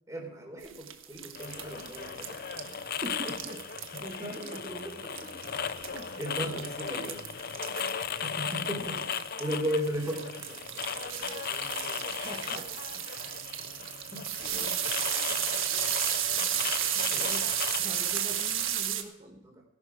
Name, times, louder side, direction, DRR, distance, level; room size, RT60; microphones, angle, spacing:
voice 1, 0.1-2.8 4.8-5.3 6.2-7.3 8.2-9.0 9.4-12.2 14.1-14.6 15.3-15.4 16.3-16.5 17.1-17.4 19.4-19.6, equal, 15° right, 1 dB, 4.0 m, -37 dB
sound 1, 0.6-19.0, right 11 dB, 70° right, 1.5 m, -34 dB
sound 2, 1.3-18.9, left 7 dB, 45° left, 0.6 m, -37 dB
voice 2, 3.0-3.7 4.0-5.0 5.9-6.1 8.8-9.1 12.1-12.7 14.4-14.8 16.9-19.5, right 1 dB, 30° right, 2 dB, 1.2 m, -43 dB
18.5 x 11.5 x 4.8 m, 0.90 s
head